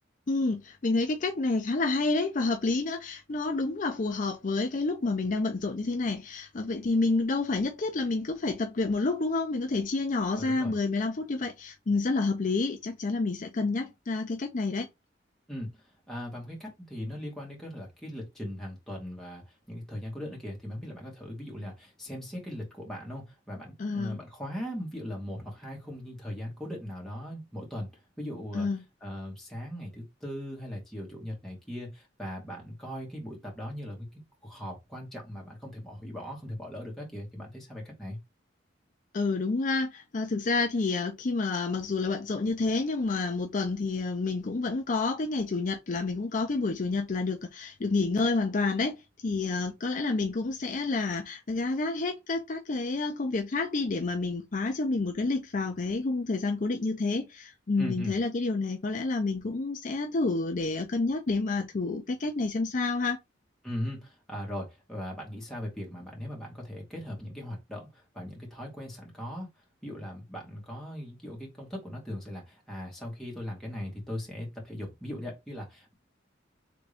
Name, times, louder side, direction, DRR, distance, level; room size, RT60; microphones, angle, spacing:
voice 1, 0.3-14.9 23.8-24.2 28.5-28.8 39.1-63.2, left 3 dB, 45° left, 0.5 m, -29 dB
voice 2, 10.4-10.8 15.5-15.7 16.1-27.9 28.2-28.7 29.0-38.2 57.8-58.2 63.6-69.5 69.8-75.9, equal, 5° left, 2.0 m, -39 dB
3.9 x 3.5 x 3.4 m
head